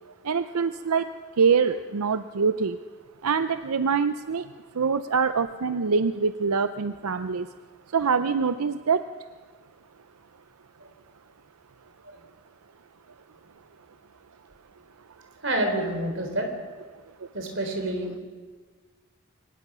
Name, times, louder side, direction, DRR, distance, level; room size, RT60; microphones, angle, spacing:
voice 1, 0.2-1.1 1.4-2.8 3.2-4.5 4.7-7.5 7.9-9.1 17.2-17.3, right 5 dB, 85° right, 11 dB, 0.6 m, -24 dB
voice 2, 15.4-16.5 17.3-18.1, right 1 dB, 55° right, 4 dB, 3.7 m, -27 dB
23.5 x 19.0 x 6.2 m, 1.5 s
head